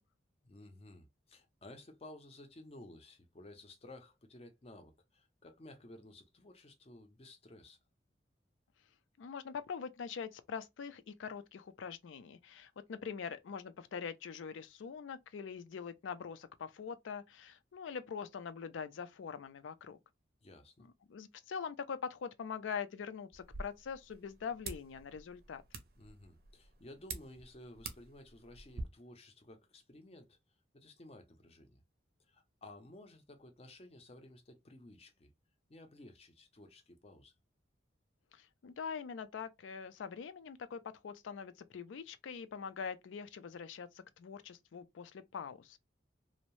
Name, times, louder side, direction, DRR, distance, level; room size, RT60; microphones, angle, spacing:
voice 1, 0.4-7.8 20.4-20.9 26.0-30.4 30.7-31.8 32.3-35.3 35.7-37.3, left 1 dB, 30° left, 0.5 m, -55 dB
voice 2, 9.2-20.0 21.1-25.6 38.3-45.8, left 6 dB, 85° left, 0.4 m, -43 dB
sound 1, 23.3-28.8, right 4 dB, 55° right, 0.5 m, -48 dB
2.6 x 2.0 x 3.0 m
head